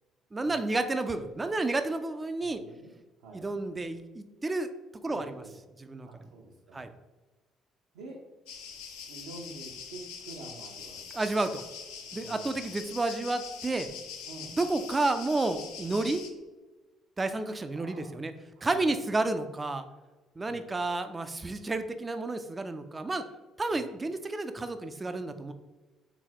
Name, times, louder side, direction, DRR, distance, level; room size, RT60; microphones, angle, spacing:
voice 1, 0.3-2.6 3.3-4.7 5.0-5.4 5.8-6.1 6.7-6.9 11.1-11.6 12.1-13.9 14.5-16.2 17.2-18.3 18.6-19.8 20.4-23.2 23.6-25.5, right 2 dB, 20° right, 9 dB, 0.4 m, -31 dB
voice 2, 2.4-2.9 3.2-3.5 5.0-5.6 6.0-6.9 7.9-8.2 9.1-11.0 12.2-12.6 14.3-14.5 17.7-18.2 18.6-18.9 20.5-20.7 23.7-23.9, right 2 dB, 65° right, -3 dB, 0.6 m, -47 dB
sound 1, 8.5-16.3, left 6 dB, 65° left, 0.5 m, -43 dB
4.0 x 3.9 x 2.9 m, 1.2 s
figure-of-eight pair, 50°, 0 cm